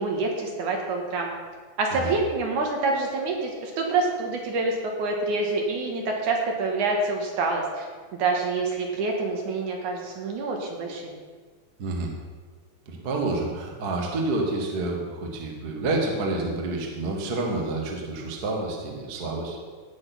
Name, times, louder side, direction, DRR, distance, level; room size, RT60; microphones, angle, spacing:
voice 1, 0.0-1.3 1.8-7.9 8.2-11.1, right 3 dB, 65° right, 1 dB, 2.8 m, -27 dB
voice 2, 11.8-12.1 12.8-19.6, right 2 dB, 35° right, 0 dB, 1.7 m, -28 dB
16.5 x 6.3 x 6.1 m, 1.5 s
omnidirectional pair, 4.0 m